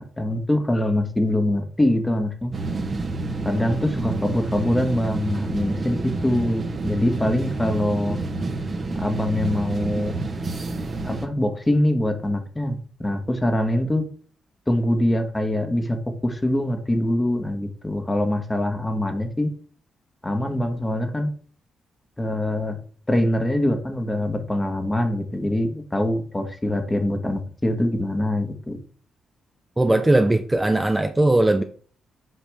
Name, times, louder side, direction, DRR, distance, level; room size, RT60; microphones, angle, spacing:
voice 1, 0.2-2.5 3.4-8.2 8.9-10.1 11.0-14.0 14.7-19.5 20.2-21.3 22.2-22.8 23.1-28.8, left 1 dB, 15° left, 6 dB, 1.6 m, -24 dB
sound 1, 2.5-11.3, right 3 dB, 45° right, 1.3 m, -28 dB
voice 2, 29.8-31.6, right 2 dB, 15° right, 6 dB, 0.7 m, -19 dB
7.9 x 4.9 x 3.6 m, 0.44 s
supercardioid pair, 50°, 0 cm